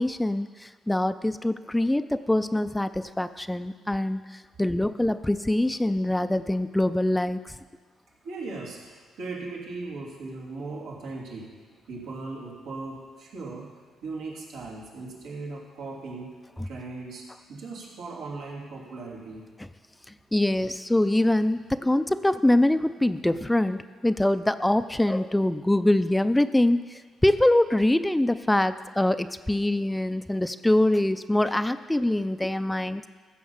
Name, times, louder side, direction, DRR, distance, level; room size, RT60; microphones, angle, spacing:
voice 1, 0.0-7.5 20.3-33.0, left 1 dB, 10° left, 11 dB, 0.4 m, -24 dB
voice 2, 8.2-11.5 11.9-13.7 14.0-16.3 16.6-19.5, right 3 dB, 90° right, -4 dB, 3.2 m, -38 dB
15.5 x 6.5 x 7.2 m, 1.5 s
cardioid pair, 90°, 0 cm